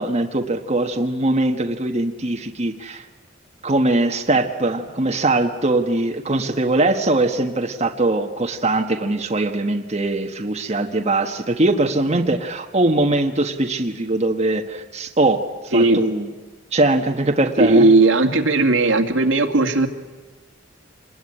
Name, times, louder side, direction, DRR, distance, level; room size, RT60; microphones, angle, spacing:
voice 1, 0.0-3.0 3.6-16.3 16.7-17.9, right 2 dB, 35° right, 3 dB, 1.5 m, -21 dB
voice 2, 17.6-19.9, right 2 dB, 80° right, 5 dB, 2.3 m, -16 dB
27.0 x 21.5 x 10.0 m, 1.3 s
head